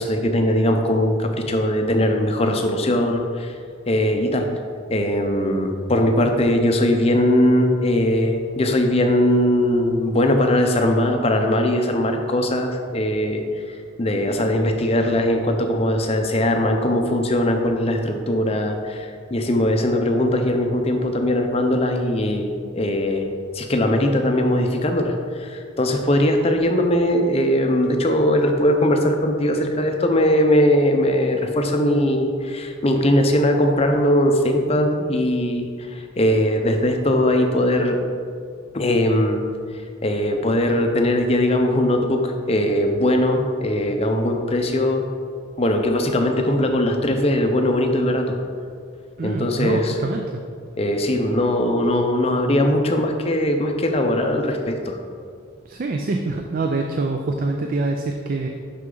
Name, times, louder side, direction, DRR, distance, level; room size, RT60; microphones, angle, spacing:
voice 1, 0.0-3.6 3.9-4.5 4.9-38.0 38.7-39.4 40.0-45.0 45.6-48.4 49.2-50.0 50.8-55.0, left 1 dB, 30° left, 4 dB, 0.5 m, -20 dB
voice 2, 49.2-50.4 55.7-58.5, right 3 dB, 40° right, 3 dB, 0.4 m, -25 dB
6.3 x 5.8 x 3.8 m, 2.2 s
head